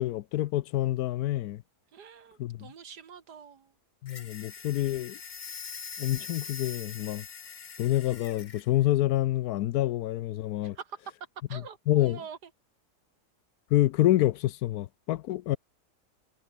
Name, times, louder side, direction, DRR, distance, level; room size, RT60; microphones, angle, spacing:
voice 1, 0.0-1.6 2.4-2.7 4.0-5.2 6.0-7.2 7.8-10.8 11.5-11.6 11.9-12.2 13.7-15.6, left 14 dB, 75° left, 1.1 m, -27 dB
voice 2, 1.9-3.7 10.6-11.1 11.5-12.5, right 7 dB, 85° right, 2.3 m, -45 dB
sound 1, 4.1-8.7, left 6 dB, 35° left, 0.9 m, -43 dB
omnidirectional pair, 1.7 m